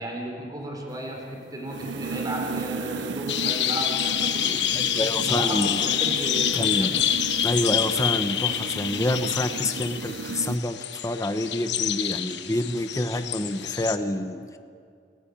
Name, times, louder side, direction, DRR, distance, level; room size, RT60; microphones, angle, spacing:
voice 1, 0.0-4.7 5.0-6.9, right 1 dB, 20° right, 1 dB, 4.4 m, -34 dB
sound 1, 0.9-10.6, right 5 dB, 80° right, 0.6 m, -35 dB
sound 2, 3.3-14.0, left 10 dB, 75° left, 1.2 m, -27 dB
voice 2, 4.7-5.8 6.5-7.0 7.4-14.6, left 1 dB, 20° left, 8 dB, 1.0 m, -27 dB
29.0 x 15.5 x 8.9 m, 2.3 s
head